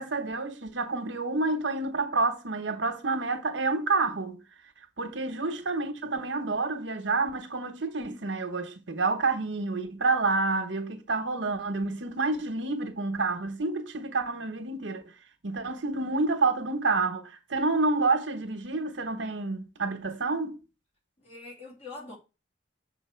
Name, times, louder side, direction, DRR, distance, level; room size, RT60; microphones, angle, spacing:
voice 1, 0.0-4.4 5.0-15.0 15.4-20.6, right 3 dB, 80° right, 1.1 m, -29 dB
voice 2, 12.3-12.7 21.2-22.2, left 3 dB, 35° left, 2.8 m, -46 dB
6.7 x 4.5 x 4.5 m
head